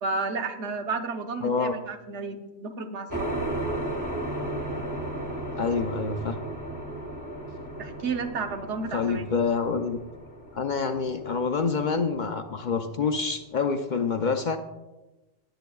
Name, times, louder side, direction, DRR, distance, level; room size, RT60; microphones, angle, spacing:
voice 1, 0.0-3.4 7.8-9.3, right 4 dB, 80° right, 6 dB, 1.2 m, -32 dB
voice 2, 1.4-1.8 5.6-6.4 8.9-10.0 10.5-14.6, left 5 dB, 50° left, 6 dB, 0.6 m, -27 dB
sound 1, 3.1-13.2, right 1 dB, 15° right, 1.2 m, -35 dB
18.0 x 8.0 x 2.3 m, 1.1 s
omnidirectional pair, 1.2 m